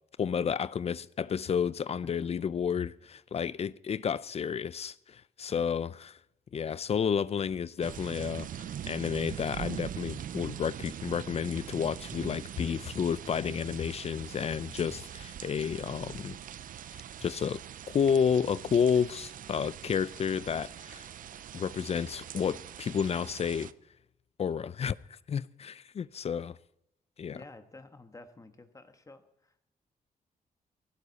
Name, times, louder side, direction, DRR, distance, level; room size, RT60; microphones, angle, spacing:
voice 1, 0.2-6.2 6.5-16.4 16.9-17.6 17.9-21.1 21.5-23.7 24.4-25.0 25.3-26.6 27.2-27.4, left 7 dB, 45° left, 0.5 m, -31 dB
sound 1, 7.8-23.7, right 10 dB, 65° right, 0.6 m, -42 dB
voice 2, 27.3-29.7, left 2 dB, 20° left, 1.4 m, -52 dB
18.5 x 16.0 x 4.1 m
cardioid pair, 120°, 15 cm